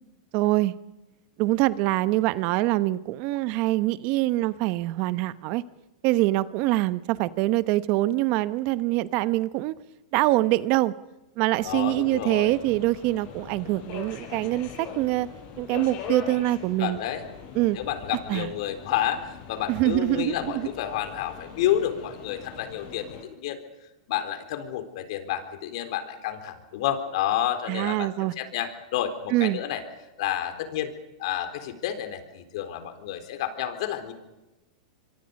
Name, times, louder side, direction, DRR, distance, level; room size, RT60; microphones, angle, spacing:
voice 1, 0.3-0.7 1.4-5.6 6.0-9.7 10.1-10.9 11.4-15.3 15.6-17.0 17.5-17.8 18.3-18.5 19.7-20.7 27.7-28.3 29.3-29.6, right 17 dB, 45° right, 15 dB, 1.0 m, -24 dB
voice 2, 11.6-12.6 16.8-17.3 17.7-23.6 24.1-29.8 30.2-30.9 31.2-34.1, left 11 dB, 65° left, 8 dB, 4.0 m, -30 dB
Subway metro underground, 11.6-23.2, left 7 dB, 45° left, 6.2 m, -41 dB
25.0 x 24.5 x 5.4 m, 1.0 s
hypercardioid pair, 130°, 3 cm